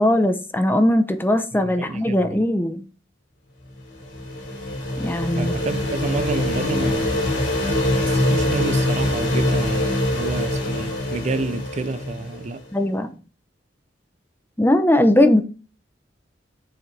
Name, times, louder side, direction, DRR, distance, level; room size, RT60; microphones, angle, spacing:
voice 1, 0.0-2.8 5.0-5.5 12.7-13.1 14.6-15.4, left 1 dB, 10° left, 0.7 m, -19 dB
voice 2, 1.5-2.4 5.4-7.2 7.9-12.6, right 3 dB, 40° right, 0.4 m, -29 dB
sound 1, 3.8-12.6, left 1 dB, 80° left, 2.8 m, -23 dB
6.7 x 5.7 x 3.3 m
head